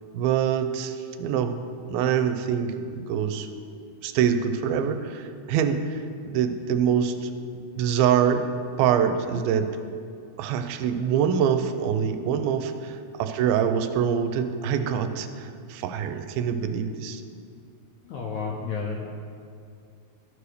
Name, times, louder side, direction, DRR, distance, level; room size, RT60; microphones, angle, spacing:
voice 1, 0.1-3.5 4.0-7.3 7.8-8.5 8.8-9.7 10.4-17.2, right 8 dB, 90° right, 8 dB, 2.5 m, -25 dB
voice 2, 18.0-19.3, left 4 dB, 75° left, -1 dB, 1.7 m, -33 dB
13.0 x 4.9 x 6.6 m, 2.4 s
omnidirectional pair, 4.3 m